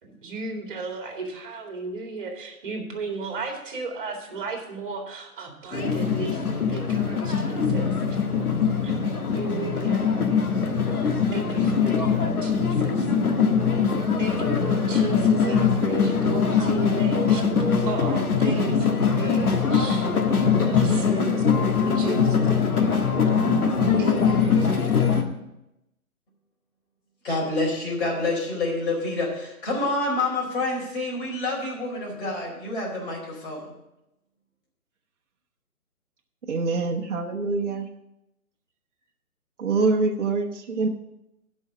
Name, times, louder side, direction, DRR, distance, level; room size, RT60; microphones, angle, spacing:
voice 1, 0.0-8.2 8.8-8.9 9.3-10.2 11.3-13.1 14.2-17.5 17.9-20.1 20.6-22.5 24.0-25.0, right 4 dB, 35° right, 2 dB, 2.2 m, -35 dB
sound 1, 5.7-25.2, left 6 dB, 80° left, 1.6 m, -22 dB
voice 2, 27.2-33.7, left 2 dB, 40° left, -3 dB, 4.2 m, -27 dB
voice 3, 36.5-37.9 39.6-40.9, right 3 dB, 55° right, 1 dB, 1.1 m, -25 dB
11.5 x 5.5 x 7.1 m, 0.89 s
hypercardioid pair, 165°, 43 cm